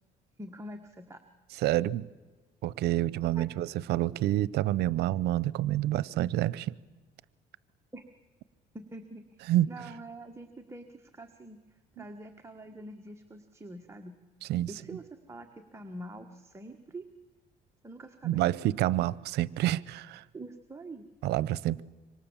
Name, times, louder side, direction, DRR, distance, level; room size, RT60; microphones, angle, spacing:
voice 1, 0.4-1.2 3.3-3.5 7.9-8.1 8.7-14.2 14.7-17.0 17.8-18.5 20.3-21.1, right 1 dB, 15° right, 4 dB, 1.6 m, -45 dB
voice 2, 1.6-2.1 2.6-6.8 9.5-9.7 12.0-12.1 14.4-14.7 18.2-20.2 21.2-21.8, right 14 dB, 80° right, 21 dB, 0.8 m, -28 dB
26.0 x 24.5 x 7.3 m, 1.3 s
cardioid pair, 110°, 17 cm